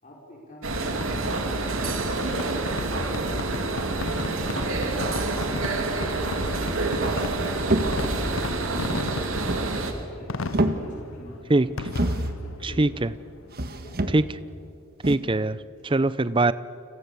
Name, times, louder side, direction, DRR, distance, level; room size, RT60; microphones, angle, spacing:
voice 1, 0.0-2.3 8.7-13.1 13.7-14.0 14.5-14.7 15.8-16.0, equal, 35° left, -3 dB, 5.2 m, -46 dB
sound 1, 0.6-9.9, right 2 dB, 70° right, 2.7 m, -27 dB
Fireworks, 1.0-14.5, left 3 dB, 65° left, 0.8 m, -37 dB
sound 2, 6.8-8.3 9.3-10.1 10.4-11.2 11.8-12.5 13.5-14.5 15.0-15.2, right 1 dB, 45° right, 1.5 m, -28 dB
voice 2, 12.6-13.1 14.1-14.2 15.0-15.6 15.8-16.5, right 2 dB, 25° right, 16 dB, 0.6 m, -21 dB
30.0 x 27.0 x 7.1 m, 2.5 s
head